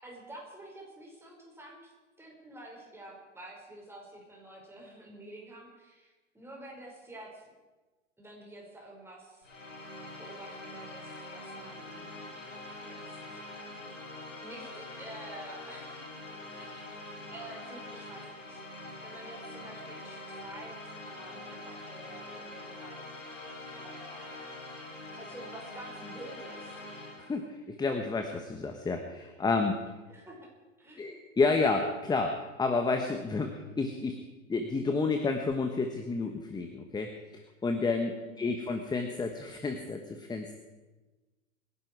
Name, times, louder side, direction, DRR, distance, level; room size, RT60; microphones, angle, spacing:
voice 1, 0.0-7.4 8.2-9.5 10.2-12.0 12.8-13.2 14.0-14.1 14.4-16.1 16.5-16.9 17.3-18.6 19.0-23.3 23.7-24.5 25.1-26.8 30.1-30.5 30.8-31.1 38.2-38.5, right 1 dB, 5° right, -2 dB, 5.5 m, -49 dB
sound 1, 9.4-27.4, left 2 dB, 90° left, 4.3 m, -44 dB
voice 2, 27.2-29.7 31.0-34.2 34.5-37.1 37.6-40.5, left 3 dB, 10° left, 5 dB, 1.2 m, -30 dB
24.5 x 11.0 x 4.7 m, 1.2 s
hypercardioid pair, 110°, 38 cm